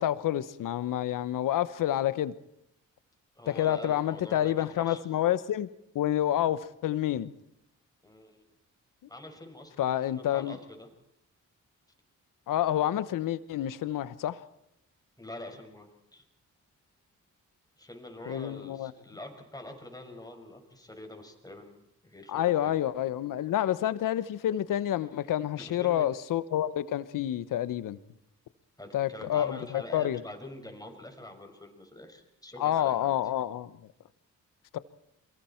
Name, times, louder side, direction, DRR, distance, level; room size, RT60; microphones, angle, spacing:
voice 1, 0.0-2.3 3.5-5.7 5.9-7.3 9.8-10.6 12.5-14.4 18.3-18.9 22.3-28.0 28.9-30.2 32.6-33.8 34.7-34.8, left 12 dB, 85° left, 1.0 m, -28 dB
voice 2, 3.4-5.0 8.0-8.4 9.1-10.9 15.2-16.2 17.8-22.8 25.6-26.0 28.8-33.2, left 1 dB, 10° left, 5.9 m, -45 dB
29.5 x 23.0 x 4.5 m
cardioid pair, 70°, 31 cm